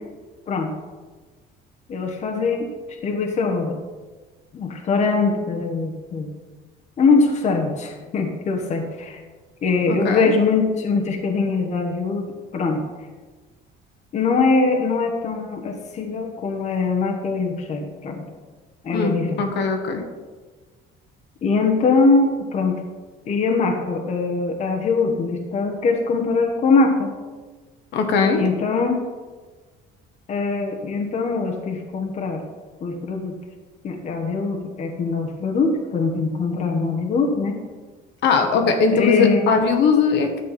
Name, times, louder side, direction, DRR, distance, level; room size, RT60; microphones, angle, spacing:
voice 1, 1.9-3.8 4.5-6.3 7.0-9.2 9.6-12.3 12.5-12.8 14.1-18.2 18.8-19.4 21.4-22.8 23.3-27.1 28.3-29.0 30.3-32.4 32.8-33.3 33.8-37.6 38.9-39.5, left 4 dB, 35° left, 2 dB, 1.2 m, -22 dB
voice 2, 9.9-10.3 18.9-20.0 27.9-28.4 38.2-40.3, left 5 dB, 60° left, 4 dB, 1.3 m, -20 dB
11.5 x 7.4 x 4.2 m, 1.3 s
cardioid pair, 170°, 20 cm